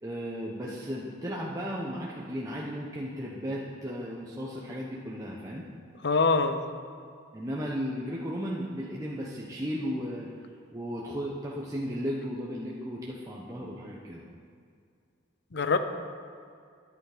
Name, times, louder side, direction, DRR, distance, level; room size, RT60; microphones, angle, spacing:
voice 1, 0.0-5.7 7.3-14.2, equal, 15° right, -4 dB, 1.1 m, -35 dB
voice 2, 6.0-6.7 15.5-15.8, left 4 dB, 60° left, 9 dB, 0.8 m, -24 dB
12.0 x 11.0 x 5.1 m, 2.3 s
head